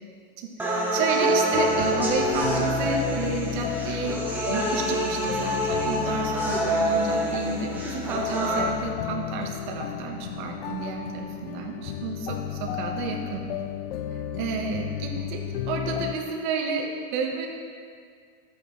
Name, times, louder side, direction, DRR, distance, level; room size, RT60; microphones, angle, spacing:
voice 1, 0.4-4.2 4.5-13.4 14.4-17.5, right 5 dB, 55° right, 1 dB, 1.5 m, -31 dB
sound 1, 0.6-8.6, right 1 dB, 5° right, 1.1 m, -27 dB
sound 2, 1.5-16.1, left 10 dB, 75° left, 0.7 m, -33 dB
12.5 x 8.9 x 3.3 m, 2.1 s
supercardioid pair, 165°, 29 cm